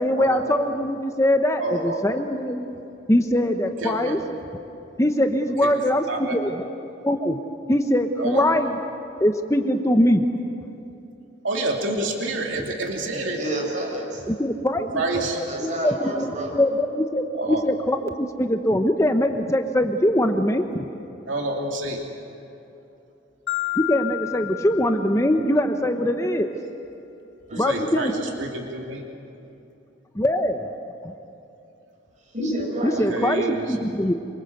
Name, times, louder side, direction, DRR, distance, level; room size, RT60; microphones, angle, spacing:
voice 1, 0.0-2.7 3.1-4.2 5.0-6.1 6.3-6.7 7.0-7.4 7.7-8.8 9.2-10.2 14.3-14.9 15.6-20.9 23.8-26.5 27.6-28.3 30.1-30.7 31.0-31.1 32.8-34.1, left 1 dB, 15° left, 6 dB, 1.0 m, -22 dB
voice 2, 1.6-2.0 3.8-4.2 5.6-5.7 6.1-6.4 8.2-8.4 11.4-13.4 14.9-15.4 17.3-17.6 21.3-22.0 27.5-29.0 32.9-33.8, right 2 dB, 80° right, 0 dB, 2.8 m, -28 dB
voice 3, 13.0-14.2 14.9-16.6 17.1-17.5 27.5-27.8 32.3-33.1, right 1 dB, 40° right, 0 dB, 6.5 m, -30 dB
Marimba xylophone, 23.5-25.7, left 19 dB, 65° left, 1.5 m, -31 dB
27.0 x 24.5 x 7.9 m, 2.8 s
head